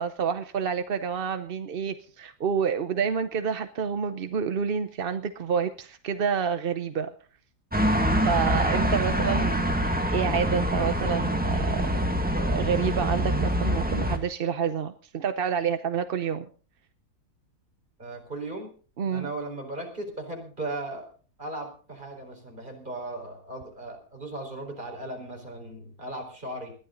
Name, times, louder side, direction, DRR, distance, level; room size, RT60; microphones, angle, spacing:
voice 1, 0.0-7.1 8.1-11.9 12.3-16.5 19.0-19.3, right 7 dB, 45° right, 9 dB, 0.8 m, -28 dB
sound 1, 7.7-14.2, equal, 5° right, 1.7 m, -25 dB
voice 2, 18.0-18.7 19.1-21.1 21.4-26.7, right 2 dB, 30° right, 2 dB, 4.6 m, -37 dB
20.0 x 12.5 x 3.9 m, 0.39 s
omnidirectional pair, 1.7 m